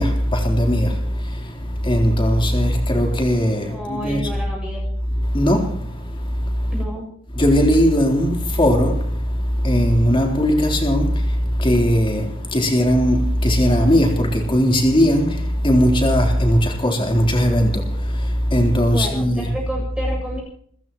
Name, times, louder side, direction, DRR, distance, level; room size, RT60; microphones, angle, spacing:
voice 1, 0.0-4.3 5.2-6.7 7.3-19.5, equal, 25° left, 3.7 m, -19 dB
voice 2, 3.6-4.9 6.7-7.1 18.8-20.4, equal, 5° right, 7.5 m, -30 dB
29.0 x 15.0 x 3.1 m
head